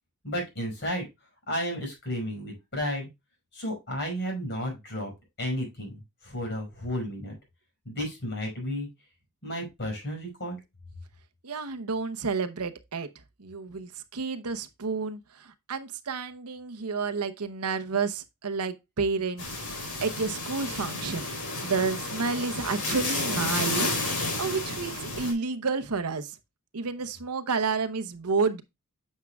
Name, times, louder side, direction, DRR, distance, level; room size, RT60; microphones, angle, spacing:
voice 1, 0.2-1.1 1.5-3.1 3.5-5.1 5.4-7.4 7.9-8.9 9.4-10.6, equal, 55° left, 5.2 m, -32 dB
voice 2, 11.4-13.1 13.4-21.3 21.6-26.4 26.7-28.6, right 4 dB, 80° right, 0.8 m, -30 dB
sound 1, 19.4-25.3, left 2 dB, 90° left, 3.8 m, -31 dB
9.4 x 6.5 x 2.3 m
head